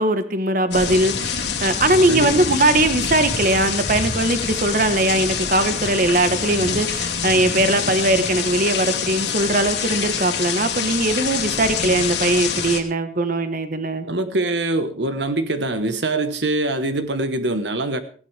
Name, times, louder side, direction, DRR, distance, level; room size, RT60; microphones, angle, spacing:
voice 1, 0.0-14.0, right 2 dB, 45° right, 1.4 m, -20 dB
sound 1, 0.7-12.8, left 6 dB, 70° left, 2.7 m, -25 dB
voice 2, 2.1-2.4 14.0-18.0, right 2 dB, 70° right, 1.3 m, -23 dB
19.0 x 16.0 x 3.5 m
head